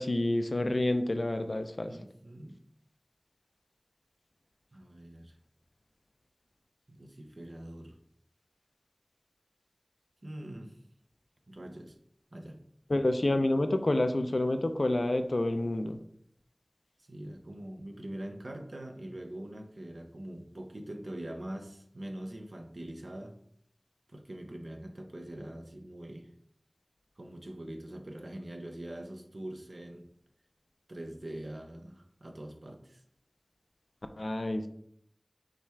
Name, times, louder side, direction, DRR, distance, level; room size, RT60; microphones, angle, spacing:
voice 1, 0.0-2.0 12.9-16.0 34.2-34.7, left 1 dB, 75° left, 8 dB, 0.4 m, -28 dB
voice 2, 1.9-2.6 4.7-5.3 6.9-8.0 10.2-10.8 11.5-12.0 12.3-12.6 17.1-23.4 24.1-26.3 27.2-30.1 30.9-33.0, right 1 dB, 75° right, 4 dB, 0.6 m, -43 dB
5.7 x 2.3 x 3.3 m, 0.69 s
wide cardioid pair, 45°, 0 cm